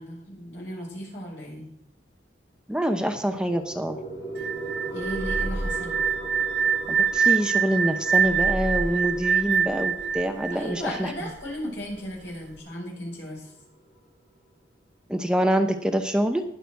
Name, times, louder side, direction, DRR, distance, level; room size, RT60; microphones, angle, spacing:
voice 1, 0.0-1.6 4.9-5.9 10.5-13.5, equal, 80° left, -2 dB, 5.6 m, -36 dB
voice 2, 2.7-4.0 6.9-11.1 15.1-16.4, equal, 5° right, 6 dB, 0.7 m, -25 dB
sound 1, 3.0-14.0, right 2 dB, 15° left, 2.6 m, -40 dB
sound 2, 4.4-11.3, right 7 dB, 65° right, 0.7 m, -25 dB
sound 3, 5.0-7.2 8.2-10.2, right 1 dB, 45° right, 1.7 m, -34 dB
19.5 x 6.7 x 4.6 m, 0.75 s
head